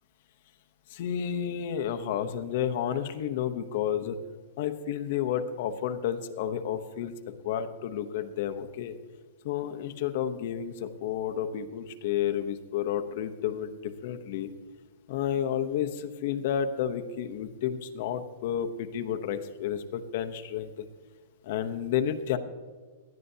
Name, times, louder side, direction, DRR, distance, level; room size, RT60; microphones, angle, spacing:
voice 1, 0.9-4.2 4.6-7.1 7.4-9.0 9.4-14.5 15.1-20.8 21.4-22.4, left 9 dB, 45° left, 7 dB, 0.8 m, -31 dB
18.0 x 11.0 x 2.8 m, 1.4 s
supercardioid pair, 175°, 0 cm